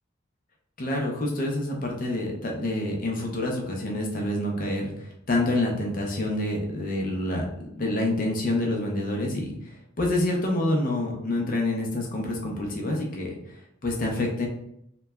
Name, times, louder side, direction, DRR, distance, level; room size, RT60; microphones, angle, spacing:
voice 1, 0.8-7.5 7.7-13.4 13.8-14.5, left 1 dB, 45° left, 0 dB, 0.5 m, -27 dB
3.0 x 2.1 x 2.2 m, 0.75 s
head